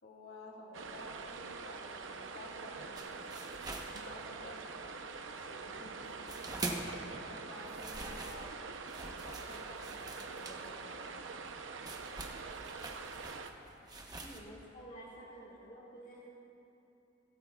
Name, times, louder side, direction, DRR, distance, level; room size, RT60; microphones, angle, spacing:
voice 1, 0.0-3.3 4.0-4.6 5.3-6.1 6.6-8.5 9.0-11.4, left 1 dB, 85° left, -2 dB, 2.9 m, -52 dB
sound 1, 0.7-13.5, right 4 dB, 85° right, 0.8 m, -45 dB
sound 2, 2.9-4.7 5.0-7.1 7.4-14.4, right 2 dB, 20° right, 1.0 m, -45 dB
voice 2, 14.2-16.3, right 1 dB, 40° left, -4 dB, 1.7 m, -51 dB
23.5 x 13.5 x 2.4 m, 2.9 s
head